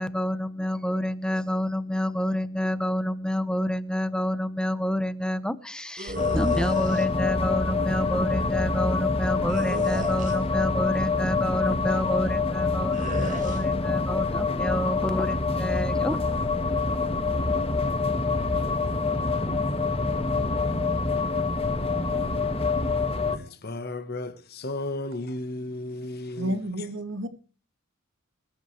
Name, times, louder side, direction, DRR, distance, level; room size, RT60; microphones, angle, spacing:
voice 1, 0.0-16.2, equal, 5° left, 0.9 m, -28 dB
sound 1, 6.0-7.1 9.5-10.5 12.9-13.6, right 1 dB, 35° right, 3.3 m, -35 dB
sound 2, 6.2-23.4, left 3 dB, 25° left, 1.4 m, -26 dB
voice 2, 23.3-26.9, left 2 dB, 45° left, 1.3 m, -34 dB
voice 3, 26.4-27.3, right 1 dB, 55° right, 2.5 m, -30 dB
21.5 x 12.5 x 3.3 m
head